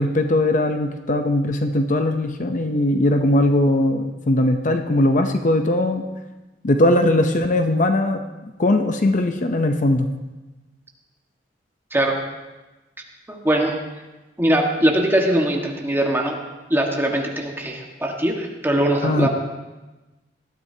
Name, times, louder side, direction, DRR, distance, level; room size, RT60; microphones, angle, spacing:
voice 1, 0.0-6.0 6.6-8.2 8.6-10.1 19.0-19.3, left 1 dB, 45° left, 6 dB, 0.7 m, -19 dB
voice 2, 13.3-13.8 14.4-16.4 16.7-19.3, right 1 dB, 15° right, 0 dB, 1.6 m, -21 dB
19.5 x 13.0 x 2.8 m, 1.1 s
head